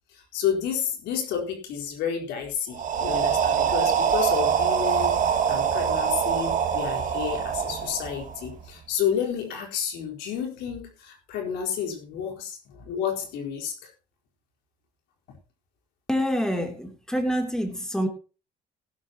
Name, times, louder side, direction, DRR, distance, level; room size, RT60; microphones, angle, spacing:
voice 1, 0.1-13.7, left 8 dB, 85° left, 1 dB, 4.4 m, -30 dB
sound 1, 2.7-8.7, right 7 dB, 50° right, 2.1 m, -24 dB
voice 2, 16.1-18.1, equal, 5° left, 3 dB, 3.2 m, -26 dB
18.0 x 11.5 x 3.0 m, 0.33 s
cardioid pair, 110°, 17 cm